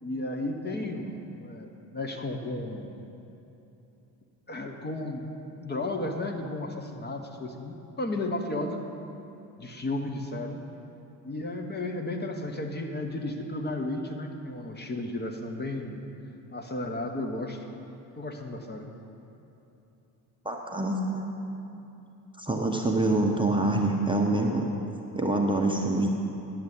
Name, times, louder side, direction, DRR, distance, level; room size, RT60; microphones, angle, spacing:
voice 1, 0.0-3.0 4.5-5.2 5.6-8.8 9.6-10.6 11.2-16.0 16.5-17.6 18.2-18.9, left 2 dB, 20° left, 3 dB, 0.9 m, -33 dB
voice 2, 20.4-21.2 22.4-24.7 25.1-26.1, right 2 dB, 10° right, 0 dB, 0.8 m, -25 dB
10.5 x 7.2 x 5.3 m, 2.9 s
figure-of-eight pair, 50°, 49 cm